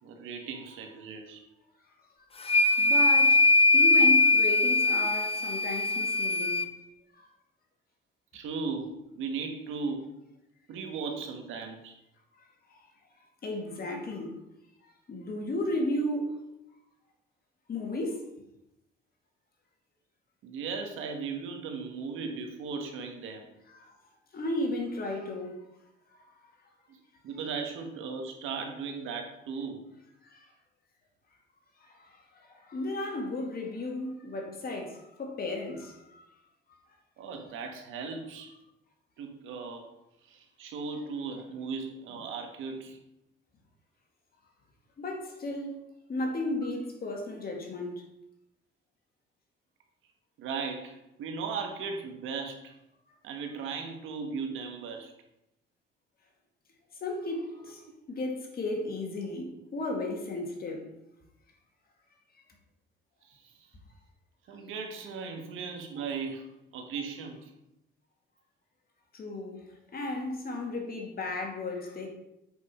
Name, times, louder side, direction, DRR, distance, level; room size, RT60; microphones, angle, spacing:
voice 1, 0.0-1.4 8.3-10.2 10.7-11.9 20.4-23.5 26.9-27.0 27.2-29.9 37.2-38.5 39.2-39.9 40.3-43.0 46.6-46.7 50.4-52.7 53.2-55.1 57.8-57.9 63.3-63.5 64.5-67.5, right 5 dB, 90° right, 1.4 m, -37 dB
sound 1, 2.4-6.7, left 2 dB, 30° left, 0.8 m, -22 dB
voice 2, 2.8-3.5 3.7-6.6 7.1-7.3 12.4-12.9 13.4-14.4 14.8-16.4 17.7-18.2 23.7-24.0 24.3-25.7 30.2-30.5 31.8-36.3 36.7-36.8 45.0-45.8 46.1-48.0 57.0-60.9 69.1-72.1, left 1 dB, 50° left, 2.0 m, -34 dB
7.9 x 5.1 x 4.3 m
cardioid pair, 90°, 20 cm